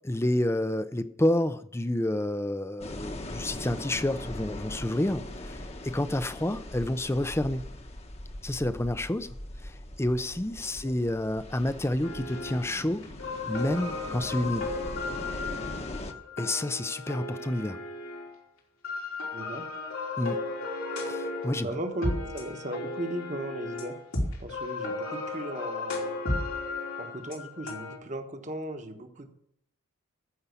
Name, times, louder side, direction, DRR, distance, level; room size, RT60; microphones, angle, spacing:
voice 1, 0.0-7.7 8.4-9.3 9.6-13.1 13.5-14.7 16.4-17.8 20.2-20.5 21.0-21.7, left 1 dB, 10° left, 13 dB, 0.5 m, -29 dB
sound 1, 2.8-16.1, left 1 dB, 30° left, 1.0 m, -41 dB
sound 2, 12.0-12.7 13.0-18.3 18.8-28.0, left 2 dB, 90° left, 3.2 m, -35 dB
voice 2, 19.3-19.6 21.6-24.0 24.4-26.2 27.0-29.3, right 2 dB, 35° right, 6 dB, 1.3 m, -36 dB
14.5 x 5.5 x 8.3 m, 0.75 s
head